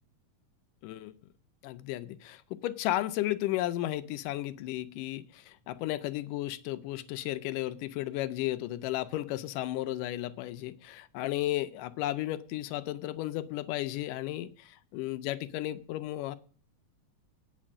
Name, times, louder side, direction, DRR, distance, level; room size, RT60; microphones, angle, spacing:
voice 1, 1.6-16.4, left 15 dB, 80° left, 13 dB, 2.2 m, -34 dB
8.9 x 6.3 x 8.5 m, 0.42 s
omnidirectional pair, 3.8 m